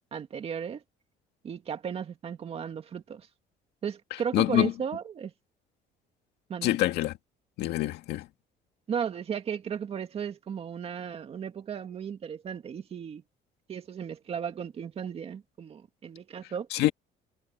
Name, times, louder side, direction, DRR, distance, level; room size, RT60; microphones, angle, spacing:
voice 1, 0.1-0.8 1.4-3.3 3.8-5.3 6.5-6.8 8.9-13.2 13.7-16.7, right 7 dB, 35° right, 2.2 m, -35 dB
voice 2, 4.3-4.7 6.6-7.1 7.6-8.3 16.7-16.9, left 15 dB, 80° left, 2.1 m, -25 dB
cardioid pair, 155°, 17 cm